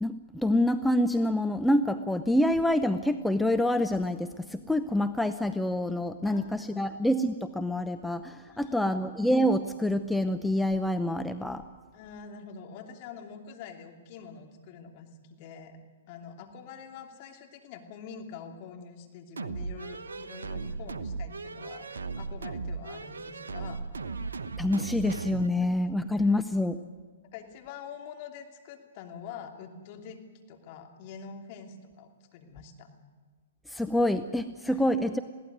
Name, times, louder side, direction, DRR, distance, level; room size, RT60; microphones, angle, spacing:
voice 1, 0.0-11.6 24.6-26.8 33.7-35.2, left 1 dB, 5° left, 9 dB, 0.7 m, -27 dB
voice 2, 6.2-7.0 8.5-9.0 11.9-15.8 16.1-24.3 25.9-26.3 27.3-30.2 30.5-32.9 34.6-34.8, left 6 dB, 45° left, 3 dB, 2.9 m, -46 dB
sound 1, 19.4-25.5, right 4 dB, 80° right, 1.0 m, -37 dB
21.0 x 16.5 x 9.4 m, 1.4 s
hypercardioid pair, 120°, 0 cm